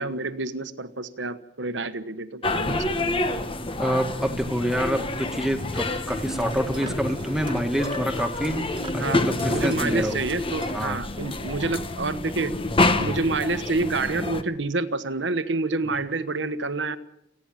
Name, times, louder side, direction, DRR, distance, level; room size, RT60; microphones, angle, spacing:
voice 1, 0.0-3.2 9.0-12.6 13.0-17.0, right 3 dB, 75° right, 11 dB, 1.3 m, -28 dB
sound 1, 2.4-14.4, left 2 dB, 30° left, 1.2 m, -28 dB
sound 2, 2.8-10.7, right 2 dB, 25° right, 1.7 m, -43 dB
voice 2, 3.8-8.6 8.9-10.1 10.7-11.0, equal, 5° right, 5 dB, 2.1 m, -27 dB
29.5 x 10.5 x 9.1 m, 0.83 s
head